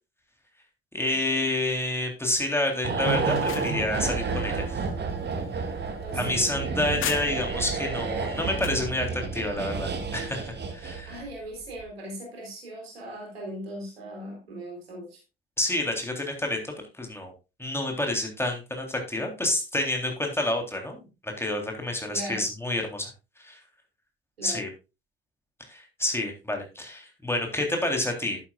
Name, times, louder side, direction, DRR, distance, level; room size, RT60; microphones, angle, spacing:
voice 1, 0.9-4.8 6.1-11.2 15.6-17.3 17.6-23.1 23.4-23.6 24.4-24.7 25.7-28.4, left 1 dB, 10° left, 2 dB, 3.5 m, -29 dB
sound 1, 2.8-11.4 11.7-11.8, right 4 dB, 35° right, 2.1 m, -30 dB
sound 2, 3.1-7.7 8.1-8.9, left 10 dB, 45° left, 1.1 m, -40 dB
voice 2, 6.0-7.1 11.1-15.2 22.1-22.4 24.4-24.6, right 1 dB, 80° right, 0 dB, 4.0 m, -39 dB
11.0 x 10.5 x 2.4 m, 0.27 s
figure-of-eight pair, 50°, 30 cm